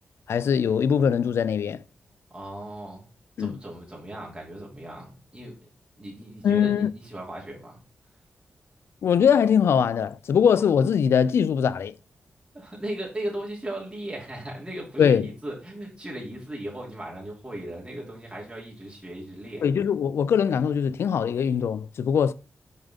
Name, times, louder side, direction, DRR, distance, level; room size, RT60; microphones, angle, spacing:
voice 1, 0.3-1.8 3.4-3.6 6.4-6.9 9.0-11.9 15.0-15.3 19.6-22.3, left 7 dB, 80° left, 0.4 m, -22 dB
voice 2, 2.3-3.1 3.4-5.6 6.0-7.8 12.5-19.7, right 1 dB, 20° right, 2.9 m, -37 dB
5.4 x 5.2 x 3.6 m
cardioid pair, 55°, 4 cm